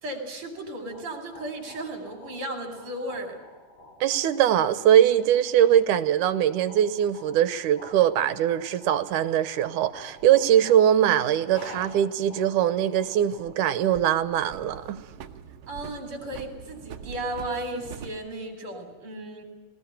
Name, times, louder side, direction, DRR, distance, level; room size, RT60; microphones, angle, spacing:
voice 1, 0.0-3.4 15.7-19.4, right 1 dB, 40° right, 6 dB, 4.3 m, -35 dB
sound 1, 0.7-14.8, left 1 dB, 85° left, 8.4 m, -49 dB
voice 2, 4.0-15.0, right 10 dB, 75° right, 14 dB, 2.4 m, -22 dB
sound 2, 9.1-10.4 12.6-13.6 13.9-18.2, right 8 dB, 60° right, 1.8 m, -44 dB
19.0 x 18.5 x 10.0 m, 1.2 s
omnidirectional pair, 3.7 m